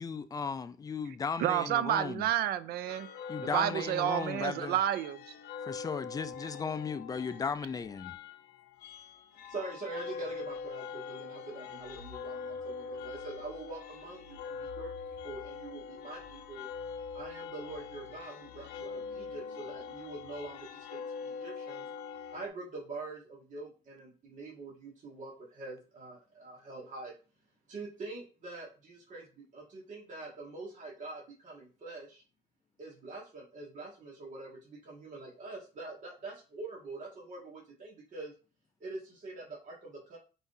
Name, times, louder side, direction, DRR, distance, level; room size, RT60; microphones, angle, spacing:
voice 1, 0.0-2.3 3.3-4.8 5.6-8.2, left 5 dB, 20° left, 0.4 m, -36 dB
voice 2, 1.4-3.1 3.5-5.2, right 12 dB, 70° right, 0.4 m, -30 dB
sound 1, 2.9-22.5, left 5 dB, 75° left, 0.7 m, -43 dB
voice 3, 9.3-16.7 17.1-21.8 22.3-27.1 27.7-32.2 32.8-38.3 38.8-40.2, right 3 dB, 45° right, 2.0 m, -44 dB
4.7 x 3.8 x 2.7 m
cardioid pair, 110°, 17 cm